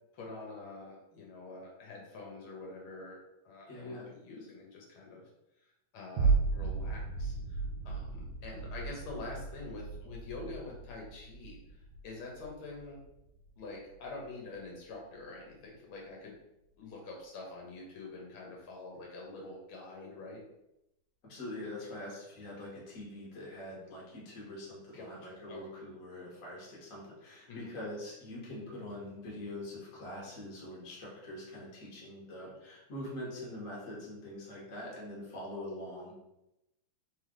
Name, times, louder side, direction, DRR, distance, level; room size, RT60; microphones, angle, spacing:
voice 1, 0.1-3.2 3.4-5.3 5.6-13.0 13.6-16.4 16.8-20.4 24.9-25.6 27.5-27.7, left 3 dB, 80° left, -1 dB, 1.8 m, -46 dB
voice 2, 3.7-4.1 21.2-36.1, left 1 dB, 45° left, -4 dB, 1.6 m, -44 dB
sound 1, 6.2-14.7 15.2-15.3, right 4 dB, 85° right, 1.6 m, -35 dB
3.8 x 3.3 x 3.7 m, 0.88 s
omnidirectional pair, 2.2 m